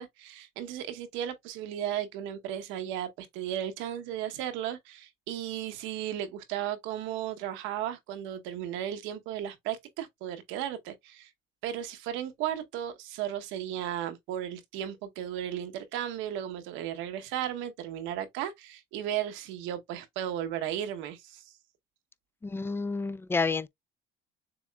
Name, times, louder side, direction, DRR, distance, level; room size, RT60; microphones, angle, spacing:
voice 1, 0.0-11.3 11.6-21.5, right 11 dB, 90° right, 0.9 m, -35 dB
voice 2, 22.4-23.7, left 4 dB, 10° left, 0.3 m, -29 dB
6.9 x 3.1 x 2.3 m
cardioid pair, 100°, 19 cm